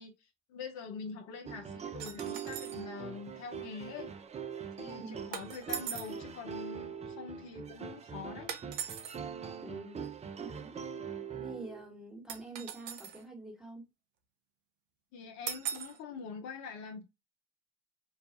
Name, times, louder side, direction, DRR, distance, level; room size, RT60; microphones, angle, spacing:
voice 1, 0.0-4.1 4.8-8.5 15.1-17.0, left 5 dB, 65° left, 0.6 m, -44 dB
sound 1, 1.5-11.9, right 7 dB, 20° right, 0.4 m, -42 dB
sound 2, 2.0-2.8 5.3-6.2 8.5-9.2 12.3-13.2 15.5-16.0, right 9 dB, 85° right, 0.5 m, -40 dB
voice 2, 5.0-5.4 9.6-10.1 10.4-10.8 11.3-13.8, right 2 dB, ahead, 1.3 m, -46 dB
2.4 x 2.3 x 2.4 m
hypercardioid pair, 60°, 31 cm